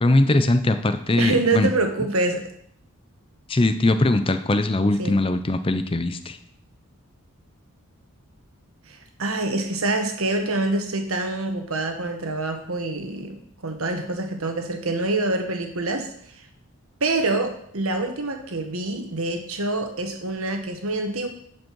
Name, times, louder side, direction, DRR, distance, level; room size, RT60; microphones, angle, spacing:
voice 1, 0.0-1.7 3.5-6.4, left 2 dB, 25° left, 10 dB, 0.5 m, -21 dB
voice 2, 1.2-2.4 5.0-5.2 8.9-16.4 17.0-21.3, right 2 dB, 70° right, 4 dB, 1.4 m, -26 dB
11.0 x 5.2 x 4.7 m, 0.66 s
head